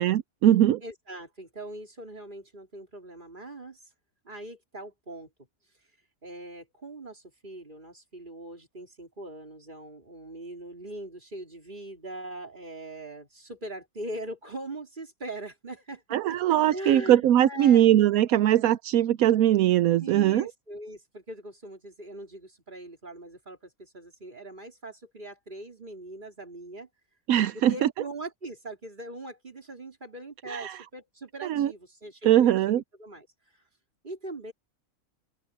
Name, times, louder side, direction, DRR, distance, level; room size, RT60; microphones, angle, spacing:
voice 1, 0.0-0.8 16.1-20.5 27.3-27.9 30.5-30.8 31.4-31.7 32.2-32.8, right 12 dB, 80° right, 1.0 m, -21 dB
voice 2, 0.8-3.9 4.2-5.3 6.2-17.8 20.0-26.9 27.5-33.3 34.0-34.5, right 1 dB, 35° right, 3.6 m, -41 dB
open air
omnidirectional pair, 1.5 m